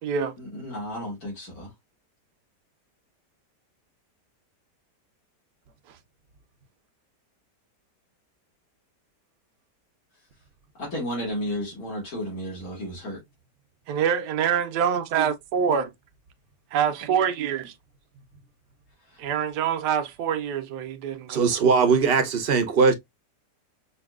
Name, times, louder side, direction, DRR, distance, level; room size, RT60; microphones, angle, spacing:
voice 1, 0.0-0.3 13.9-15.9 16.7-17.7 19.2-22.0, right 8 dB, 75° right, 1.2 m, -26 dB
voice 2, 0.5-1.7 10.8-13.2, equal, 55° left, 2.7 m, -32 dB
voice 3, 21.3-22.9, right 5 dB, 50° right, 0.8 m, -20 dB
5.3 x 2.6 x 2.4 m
omnidirectional pair, 1.8 m